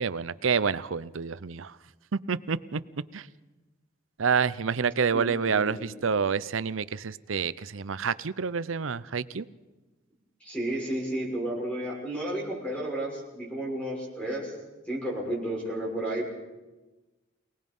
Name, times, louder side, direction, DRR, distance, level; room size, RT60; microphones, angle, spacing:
voice 1, 0.0-1.8 2.1-2.8 3.1-3.3 4.2-9.5, right 6 dB, 90° right, 17 dB, 0.7 m, -28 dB
voice 2, 5.1-5.9 10.4-14.5 14.9-16.3, right 1 dB, 5° left, -3 dB, 6.5 m, -32 dB
29.0 x 19.0 x 5.5 m, 1.2 s
head